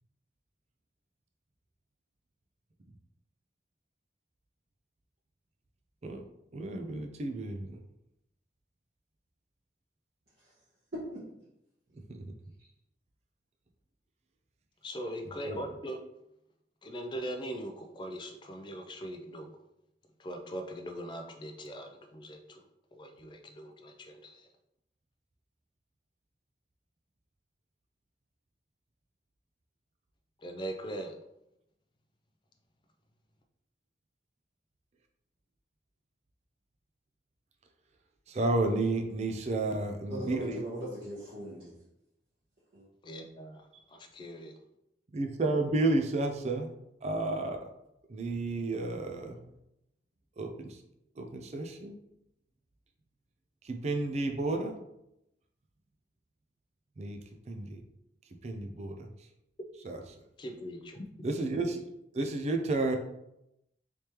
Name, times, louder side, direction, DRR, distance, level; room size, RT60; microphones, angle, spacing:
voice 1, 6.5-7.8 12.1-12.2 15.5-15.6 38.3-40.6 43.7-43.8 45.1-46.7 47.0-47.7 48.1-49.4 50.4-50.8 51.2-52.0 53.6-54.7 57.0-57.2 57.5-57.8 58.4-59.1 59.8-60.0 61.2-61.8 62.1-63.0, right 2 dB, 40° right, 4 dB, 0.4 m, -31 dB
voice 2, 14.8-16.0 16.8-19.5 20.2-22.6 22.9-24.5 30.4-31.1 43.0-44.5 60.4-61.0, equal, 25° left, 4 dB, 0.4 m, -41 dB
voice 3, 40.1-41.7 42.7-42.9, right 1 dB, 60° right, -11 dB, 1.2 m, -39 dB
3.4 x 3.1 x 2.9 m, 0.84 s
head